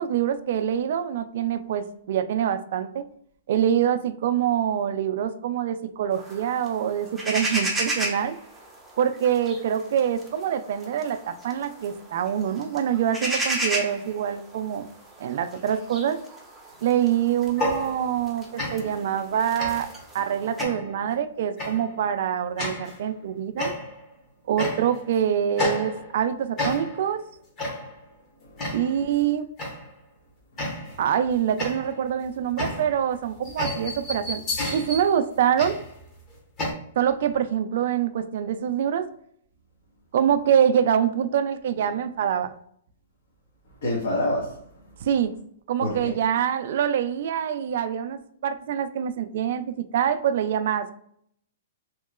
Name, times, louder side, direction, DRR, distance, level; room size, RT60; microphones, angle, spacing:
voice 1, 0.0-3.0 3.5-8.4 9.0-14.8 15.2-16.2 16.8-19.9 20.1-23.7 24.5-27.2 28.7-29.5 31.0-34.4 34.7-35.8 37.0-39.0 40.1-42.5 45.0-45.3 45.7-50.9, right 9 dB, 60° right, 0.3 m, -25 dB
sound 1, 6.1-20.6, right 1 dB, 5° right, 0.5 m, -34 dB
sound 2, 17.5-18.3 18.6-19.0 19.6-20.0 20.6-21.0 21.6-21.9 22.6-23.0 23.6-24.1 24.6-25.1 25.6-26.2 26.6-27.1 27.6-28.0 28.6-29.0 29.6-29.9 30.6-31.1 31.6-36.7, left 1 dB, 30° left, 1.0 m, -31 dB
voice 2, 28.4-29.2 30.5-31.0 43.8-44.9 45.8-46.2, left 1 dB, 70° left, 1.1 m, -30 dB
3.0 x 2.8 x 2.3 m
hypercardioid pair, 150°, 0 cm